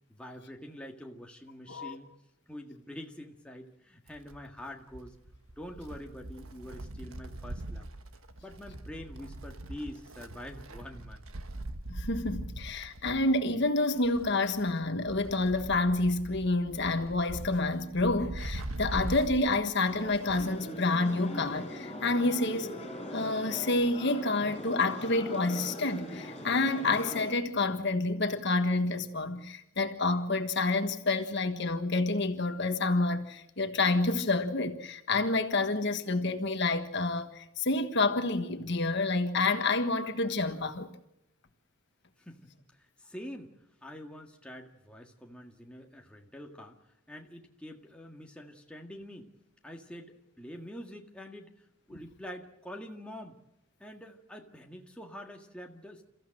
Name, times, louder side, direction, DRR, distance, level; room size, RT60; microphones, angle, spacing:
voice 1, 0.1-2.1 2.5-5.1 5.6-7.9 8.4-11.2 42.2-42.4 42.7-43.5 43.8-49.3 49.6-51.5 51.9-53.4 53.8-56.0, equal, 5° left, 1.8 m, -45 dB
Wind, 4.1-20.7 21.0-21.1 22.1-22.2, right 1 dB, 80° right, 1.4 m, -42 dB
voice 2, 11.9-22.7 23.1-40.9, left 2 dB, 55° left, 1.5 m, -28 dB
sound 1, 19.9-27.3, left 1 dB, 25° left, 6.6 m, -41 dB
29.0 x 15.0 x 7.7 m
head